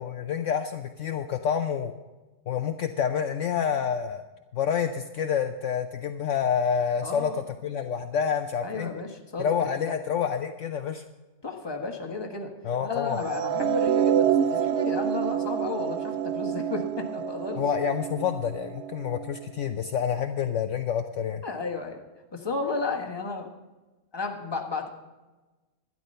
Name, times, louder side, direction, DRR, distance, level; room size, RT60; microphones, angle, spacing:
voice 1, 0.0-1.9 2.5-4.2 4.5-8.9 9.4-11.0 12.6-13.2 17.6-21.4, left 7 dB, 65° left, 7 dB, 0.9 m, -28 dB
voice 2, 7.0-7.4 8.6-9.5 9.8-9.9 11.4-12.5 12.8-17.6 21.4-22.0 22.3-23.5 24.1-24.9, left 4 dB, 20° left, 2 dB, 1.4 m, -33 dB
sound 1, 13.2-19.5, right 9 dB, 65° right, 0.7 m, -27 dB
12.5 x 10.5 x 5.5 m, 1.2 s
omnidirectional pair, 1.5 m